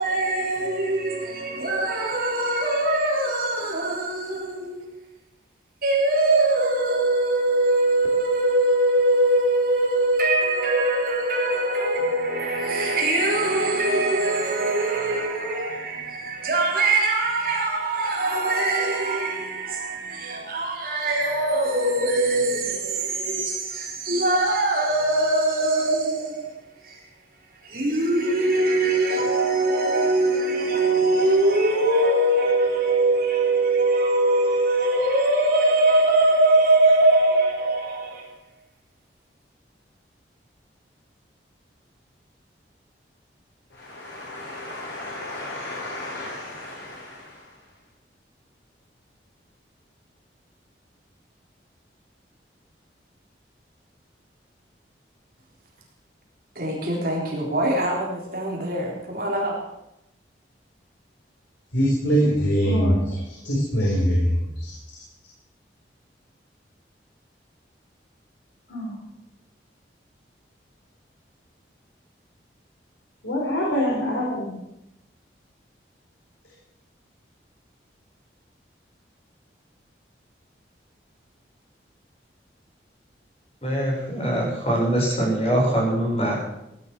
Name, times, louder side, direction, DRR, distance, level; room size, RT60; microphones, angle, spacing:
voice 1, 0.0-4.9 5.8-26.5 26.8-27.0 27.6-38.3 56.6-59.6, right 2 dB, 50° right, 4.0 m, -22 dB
voice 2, 43.7-47.6 61.7-64.8 68.7-69.0 73.2-74.5, equal, 90° left, 4.3 m, -25 dB
voice 3, 83.6-86.5, right 1 dB, 35° left, 6.1 m, -23 dB
17.5 x 10.5 x 6.1 m
head